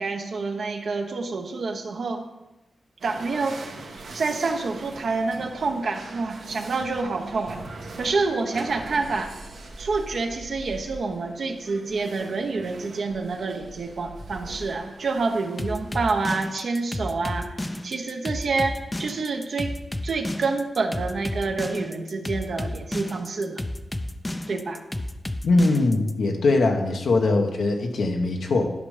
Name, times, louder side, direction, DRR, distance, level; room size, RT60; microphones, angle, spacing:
voice 1, 0.0-2.2 3.0-3.6 4.1-7.6 8.0-9.3 9.8-19.7 20.0-23.6 24.5-24.8, right 3 dB, 70° right, 4 dB, 1.0 m, -27 dB
sound 1, 3.0-16.5, right 2 dB, 85° right, 1.5 m, -42 dB
sound 2, 15.6-26.1, left 1 dB, 20° left, 0.5 m, -31 dB
voice 2, 25.4-28.7, left 2 dB, 85° left, 3 dB, 1.2 m, -21 dB
11.0 x 5.4 x 5.0 m, 1.0 s
cardioid pair, 75°, 0 cm